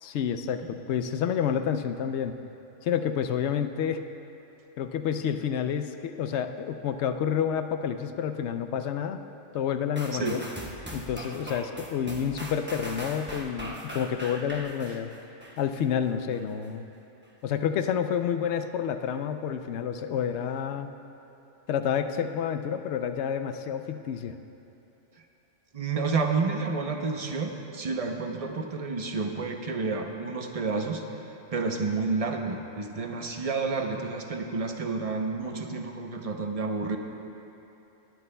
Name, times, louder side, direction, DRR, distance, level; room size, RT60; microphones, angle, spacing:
voice 1, 0.0-2.3 2.8-4.0 4.8-9.2 9.5-10.4 10.9-15.1 15.6-16.8 17.4-20.9 21.7-24.3, left 8 dB, 70° left, 8 dB, 0.8 m, -29 dB
sound 1, 10.0-15.8 16.3-16.4, equal, 10° right, 0.9 m, -40 dB
voice 2, 25.7-31.0 31.5-37.0, right 4 dB, 35° right, 3 dB, 0.7 m, -30 dB
19.5 x 12.5 x 2.2 m, 3.0 s
omnidirectional pair, 1.3 m